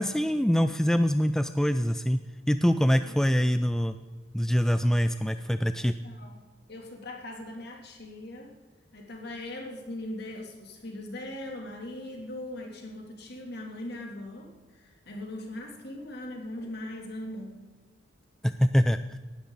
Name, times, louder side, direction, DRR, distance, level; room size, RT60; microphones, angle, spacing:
voice 1, 0.0-2.2 2.5-4.0 4.3-5.9 18.4-19.2, equal, 5° left, 10 dB, 0.4 m, -24 dB
voice 2, 5.8-6.4 6.7-8.5 8.9-17.6, left 1 dB, 60° left, 1 dB, 3.1 m, -40 dB
18.0 x 12.5 x 4.0 m, 1.3 s
head